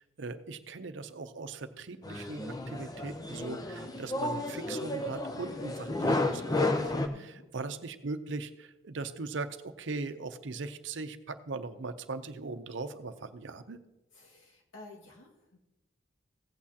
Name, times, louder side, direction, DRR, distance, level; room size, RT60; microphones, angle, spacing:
voice 1, 0.0-13.8, right 3 dB, 65° right, 10 dB, 0.7 m, -40 dB
sound 1, 2.0-7.1, left 2 dB, 20° left, 0.5 m, -32 dB
voice 2, 7.1-7.5 14.1-15.6, left 2 dB, 80° left, 0 dB, 1.9 m, -52 dB
15.5 x 8.6 x 2.9 m, 0.96 s
head